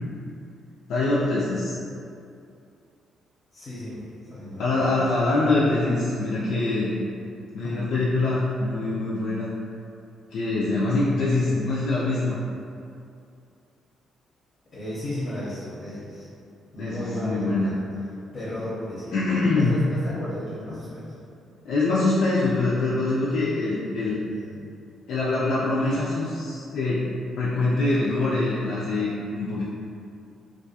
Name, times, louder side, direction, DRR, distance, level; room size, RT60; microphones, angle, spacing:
voice 1, 0.9-1.8 4.6-7.0 7.5-9.5 10.3-12.4 16.8-17.7 19.1-19.7 21.6-24.2 25.1-27.0 27.4-29.6, left 2 dB, 80° left, -8 dB, 0.3 m, -24 dB
voice 2, 3.5-4.8 7.6-7.9 11.4-11.6 14.7-16.3 16.7-17.8 18.3-21.2 24.3-24.7, left 1 dB, 45° left, -10 dB, 0.7 m, -34 dB
2.3 x 2.3 x 2.7 m, 2.5 s
cardioid pair, 90°, 0 cm